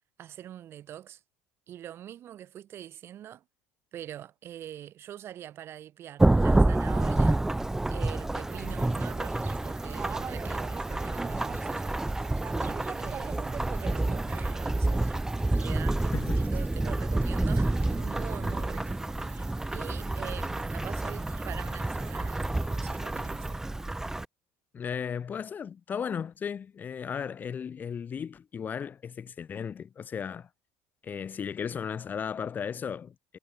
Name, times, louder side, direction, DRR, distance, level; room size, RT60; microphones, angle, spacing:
voice 1, 0.2-1.2 1.7-3.4 3.9-7.4 7.9-12.0 12.5-15.1 15.6-23.5, right 11 dB, 50° right, 3.3 m, -44 dB
Thunderstorm / Rain, 6.2-24.2, right 2 dB, 10° right, 1.4 m, -28 dB
sound 1, 8.5-23.5, right 7 dB, 35° right, 1.5 m, -46 dB
voice 2, 24.7-30.5 31.0-33.4, left 7 dB, 35° left, 1.1 m, -35 dB
supercardioid pair, 95°, 5 cm